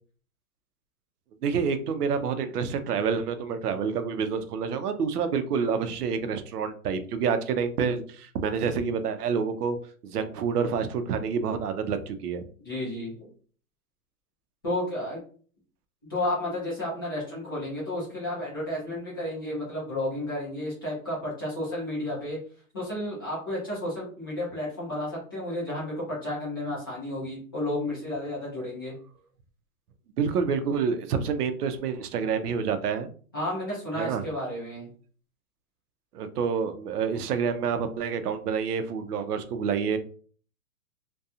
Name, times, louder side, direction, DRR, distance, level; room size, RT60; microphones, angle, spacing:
voice 1, 1.4-9.8 10.0-12.4 30.2-33.1 34.0-34.2 36.1-40.0, right 6 dB, 90° right, 9 dB, 0.6 m, -28 dB
voice 2, 12.6-13.3 14.6-15.2 16.1-22.4 22.7-28.9 33.3-34.9, left 1 dB, 15° left, -8 dB, 0.5 m, -32 dB
2.7 x 2.2 x 2.4 m, 0.43 s
hypercardioid pair, 165°, 45 cm